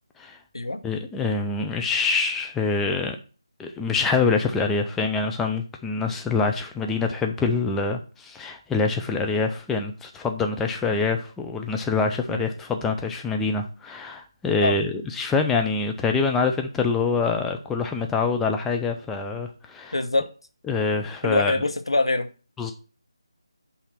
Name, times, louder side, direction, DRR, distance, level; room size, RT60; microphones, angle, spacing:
voice 1, 0.8-3.2 3.6-19.9 20.7-21.6 22.6-22.7, left 4 dB, 5° left, 4 dB, 0.4 m, -25 dB
voice 2, 19.9-20.3 21.2-22.3, left 2 dB, 80° left, 9 dB, 0.9 m, -23 dB
5.7 x 4.2 x 5.9 m, 0.36 s
figure-of-eight pair, 160°, 3 cm